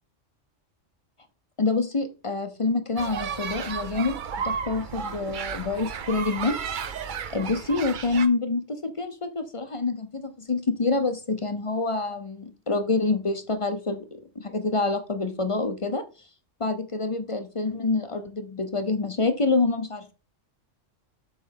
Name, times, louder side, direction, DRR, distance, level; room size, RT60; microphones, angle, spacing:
voice 1, 1.6-4.2 4.4-6.6 7.3-16.0 16.6-20.1, left 3 dB, 35° left, 9 dB, 0.6 m, -27 dB
sound 1, 3.0-8.3, right 6 dB, 50° right, 0.6 m, -33 dB
7.7 x 3.2 x 5.6 m, 0.34 s
omnidirectional pair, 1.3 m